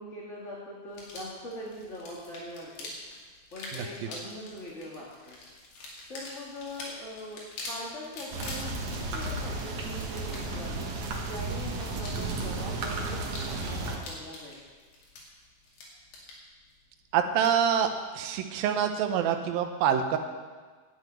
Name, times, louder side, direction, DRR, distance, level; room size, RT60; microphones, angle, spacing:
voice 1, 0.0-2.9 3.5-5.4 6.1-7.4 7.7-14.6, left 1 dB, 35° left, -6 dB, 1.2 m, -42 dB
sound 1, 0.9-18.1, left 2 dB, 80° left, 4.2 m, -46 dB
sound 2, 8.3-14.0, right 2 dB, 60° right, 2.3 m, -33 dB
voice 2, 17.1-17.9 18.2-20.2, right 8 dB, 75° right, 6 dB, 2.5 m, -26 dB
11.5 x 6.4 x 9.1 m, 1.5 s
omnidirectional pair, 4.6 m